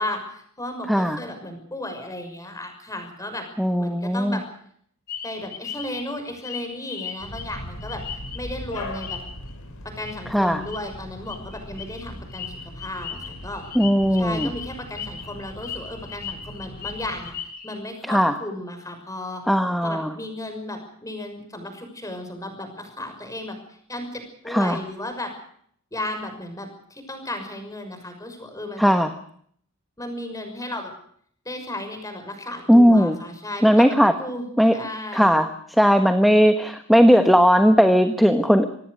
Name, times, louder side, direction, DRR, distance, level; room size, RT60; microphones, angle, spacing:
voice 1, 0.0-3.5 3.8-4.4 5.2-9.2 9.8-13.6 14.1-17.3 17.6-19.4 19.8-25.3 25.9-28.9 30.0-30.9 31.4-34.5 34.7-35.4, left 1 dB, 15° left, 6 dB, 6.2 m, -34 dB
voice 2, 0.9-1.2 3.6-4.4 10.3-10.6 13.7-14.5 18.1-18.3 19.5-20.1 24.5-24.8 28.8-29.1 32.7-33.2 33.6-34.1 34.6-34.7 35.1-35.5 35.8-38.7, equal, ahead, 7 dB, 1.3 m, -17 dB
sound 1, 5.1-8.6 8.9-9.5 10.0-10.2 10.5-10.8 11.3-17.8, left 8 dB, 45° left, 4.9 m, -37 dB
sound 2, 7.2-17.3, left 1 dB, 75° left, 6.1 m, -40 dB
26.0 x 19.0 x 6.6 m, 0.63 s
head